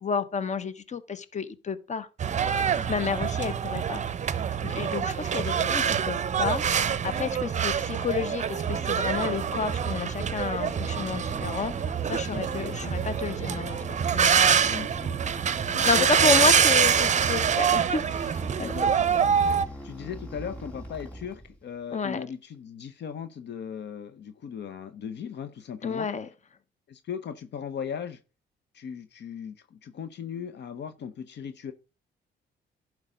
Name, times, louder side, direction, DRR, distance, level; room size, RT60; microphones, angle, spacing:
voice 1, 0.0-2.1 2.7-4.0 4.6-11.8 12.1-13.8 14.1-14.5 15.8-18.7 21.9-22.2 25.8-26.3, left 5 dB, 35° left, 1.0 m, -30 dB
sound 1, 2.2-19.7, right 7 dB, 35° right, 0.6 m, -25 dB
RC Helicopter Wind Blowing, 9.0-21.8, equal, 5° left, 3.8 m, -41 dB
voice 2, 12.3-12.9 14.6-15.1 15.7-16.5 18.6-19.2 19.8-26.1 26.9-28.2 28.7-31.7, left 7 dB, 60° left, 0.8 m, -37 dB
11.0 x 4.7 x 5.0 m
cardioid pair, 90°, 20 cm